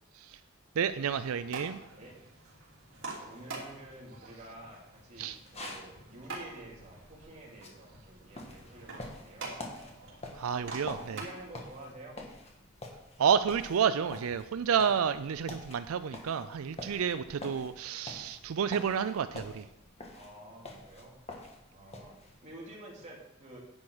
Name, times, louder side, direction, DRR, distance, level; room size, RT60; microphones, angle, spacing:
voice 1, 0.8-1.8 5.2-5.4 10.3-11.2 13.2-19.7, right 7 dB, 85° right, 12 dB, 0.4 m, -30 dB
sound 1, 1.1-11.9, right 3 dB, 65° right, 3.2 m, -46 dB
voice 2, 1.9-2.5 3.0-9.7 10.5-10.8 11.0-12.2 20.1-21.2 21.7-23.6, right 1 dB, 35° right, -3 dB, 3.2 m, -50 dB
sound 2, 5.3-22.5, left 2 dB, 30° left, 1.7 m, -47 dB
10.5 x 8.5 x 4.9 m, 0.85 s
head